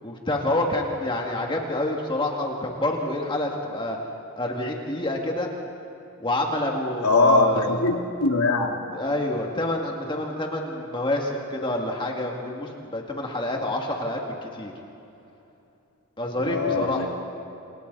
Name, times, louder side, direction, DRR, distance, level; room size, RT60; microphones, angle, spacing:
voice 1, 0.0-4.0 4.4-5.5 6.2-7.8 8.9-14.7 16.2-17.1, left 1 dB, 20° left, 0 dB, 2.5 m, -27 dB
voice 2, 7.0-8.8 16.4-17.1, left 3 dB, 85° left, 2 dB, 2.4 m, -22 dB
28.5 x 28.0 x 4.2 m, 2.8 s
head